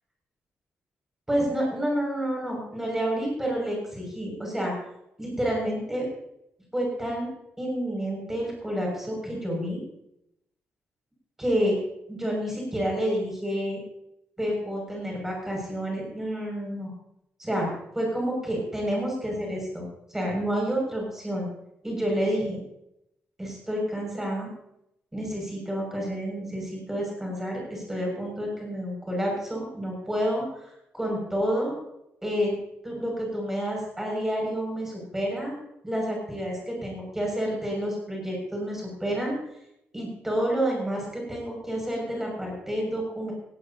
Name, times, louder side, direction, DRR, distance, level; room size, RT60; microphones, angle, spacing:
voice 1, 1.3-4.7 5.2-6.1 6.7-7.3 7.6-9.8 11.4-11.8 12.1-13.8 14.4-16.9 17.4-17.7 17.9-21.5 21.8-22.6 23.4-24.5 25.1-31.7 32.2-32.5 32.8-35.5 35.8-39.4 39.9-43.3, equal, 10° right, -1 dB, 6.5 m, -29 dB
18.0 x 17.0 x 2.9 m, 0.81 s
wide cardioid pair, 175°, 4 cm